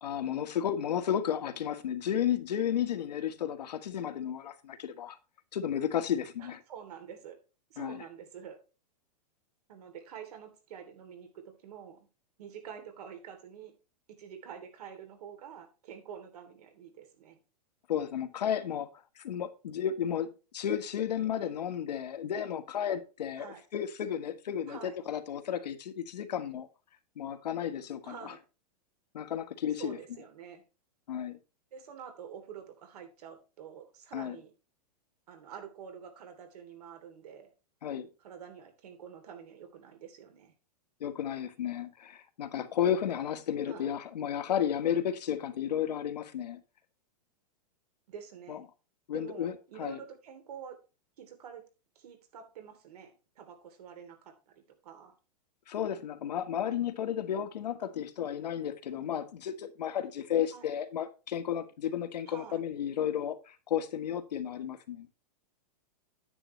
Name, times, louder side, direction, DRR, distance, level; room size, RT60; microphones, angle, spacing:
voice 1, 0.0-5.2 5.5-6.6 7.8-8.0 17.9-18.9 19.2-26.7 27.1-28.3 29.1-30.0 31.1-31.4 34.1-34.4 37.8-38.1 41.0-46.6 48.5-48.6 49.1-50.0 55.7-65.1, left 9 dB, 90° left, 1.5 m, -33 dB
voice 2, 6.4-7.4 7.7-8.6 9.7-12.1 12.4-13.7 14.2-17.4 23.4-23.6 24.7-25.0 28.0-28.4 29.8-30.6 31.7-34.5 35.3-37.5 38.2-40.5 43.7-43.9 48.1-48.6 49.1-50.8 51.2-51.6 51.9-55.1 60.5-60.7 62.3-62.6, right 8 dB, 70° right, 3.2 m, -47 dB
9.8 x 8.9 x 3.2 m
supercardioid pair, 155°, 21 cm